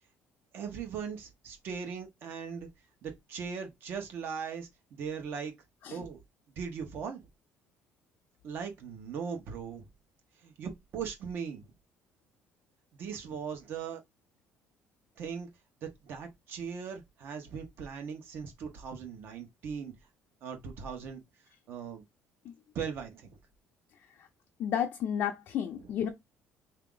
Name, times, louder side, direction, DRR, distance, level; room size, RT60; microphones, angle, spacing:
voice 1, 0.5-2.7 3.0-5.5 5.9-6.2 6.6-7.2 8.4-9.9 10.4-11.7 13.0-14.0 15.2-15.5 15.8-19.9 20.4-21.2 21.7-22.0 22.7-23.4 25.8-25.9, right 6 dB, 55° right, 1.1 m, -39 dB
voice 2, 24.6-26.1, left 9 dB, 55° left, 0.6 m, -31 dB
3.5 x 2.8 x 3.8 m
cardioid pair, 155°, 4 cm